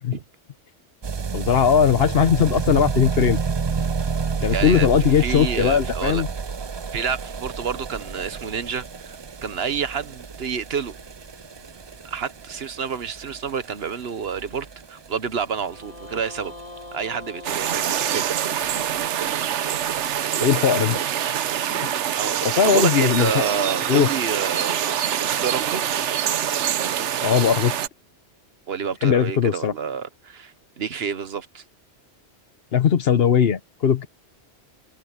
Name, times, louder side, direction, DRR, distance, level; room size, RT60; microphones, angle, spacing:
sound 1, 1.0-17.8 18.1-18.2 18.4-18.5 18.7-18.8 19.0-19.1 19.8-19.9, right 5 dB, 40° right, 0.3 m, -30 dB
voice 1, 1.3-3.4 4.4-6.3 20.4-21.0 21.7-21.9 22.4-23.4 23.9-24.1 27.2-27.8 29.0-29.7 32.7-34.1, left 8 dB, 60° left, 1.0 m, -19 dB
voice 2, 4.5-4.9 5.2-6.2 6.9-11.0 12.0-16.5 16.9-18.2 22.1-25.8 28.7-31.6, right 6 dB, 60° right, 1.2 m, -29 dB
sound 2, 10.7-13.2 15.4-19.6 21.7-27.9, left 2 dB, 35° left, 4.2 m, -45 dB
sound 3, 17.4-27.9, right 9 dB, 85° right, 1.1 m, -25 dB
omnidirectional pair, 1.2 m